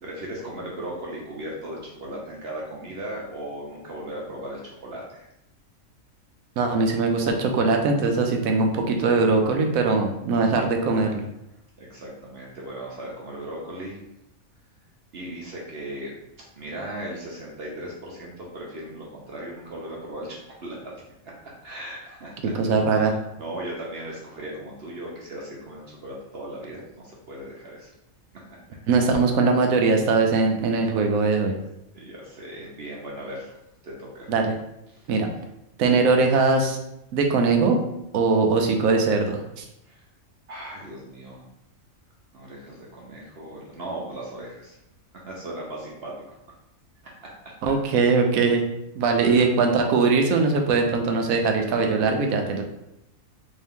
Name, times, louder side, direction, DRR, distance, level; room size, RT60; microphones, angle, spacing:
voice 1, 0.0-5.3 11.8-14.0 15.1-16.1 16.5-20.9 21.2-22.5 22.9-23.1 23.4-27.9 31.9-33.6 33.8-34.3 34.9-35.1 39.8-40.0 40.5-41.4 42.3-44.8 45.1-46.1 47.0-47.3 47.9-48.1 48.4-48.5 49.1-49.4, right 1 dB, 55° right, -3 dB, 0.9 m, -37 dB
voice 2, 6.6-11.2 22.5-23.1 28.9-31.5 34.3-34.5 35.1-35.3 35.8-36.8 37.1-37.8 38.1-39.6 47.6-48.6 49.0-52.6, right 4 dB, 90° right, 3 dB, 1.1 m, -21 dB
3.6 x 2.7 x 3.5 m, 0.84 s
omnidirectional pair, 1.4 m